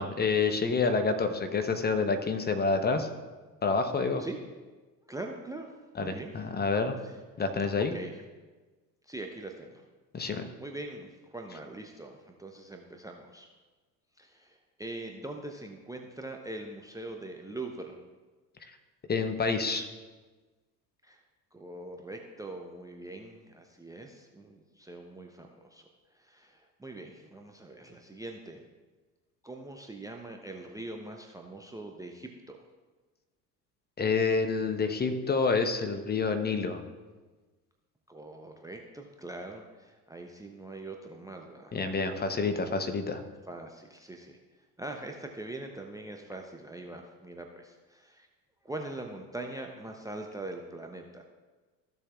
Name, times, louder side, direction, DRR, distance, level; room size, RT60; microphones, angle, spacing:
voice 1, 0.0-3.1 3.6-4.2 6.0-7.0 7.4-7.9 10.1-10.5 19.1-19.9 34.0-36.8 41.7-43.2, left 4 dB, 20° left, 7 dB, 0.9 m, -28 dB
voice 2, 5.1-5.7 6.0-6.3 7.0-7.1 7.9-8.1 9.0-9.9 10.6-13.5 14.2-18.0 21.0-21.2 21.5-28.6 29.4-32.6 38.1-41.8 43.5-44.4 44.8-48.3 48.6-51.2, right 2 dB, 5° right, 4 dB, 0.7 m, -42 dB
14.5 x 7.0 x 2.4 m, 1.3 s
figure-of-eight pair, 65°, 47 cm